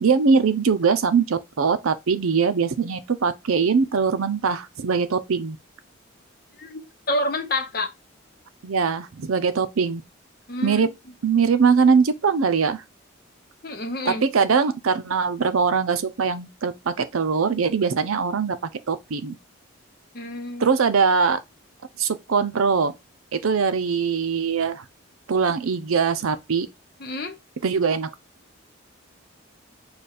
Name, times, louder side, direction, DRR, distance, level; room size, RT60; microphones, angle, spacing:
voice 1, 0.0-5.6 8.6-10.0 10.6-10.9 11.2-12.8 14.1-19.3 20.6-21.4 22.0-22.9 23.3-24.8 25.3-26.7 27.6-28.1, right 5 dB, 80° right, 0.6 m, -22 dB
voice 2, 6.6-7.9 10.5-10.9 13.6-14.2 20.1-20.7 27.0-27.4, left 1 dB, 45° left, 0.8 m, -28 dB
5.0 x 2.4 x 4.1 m
head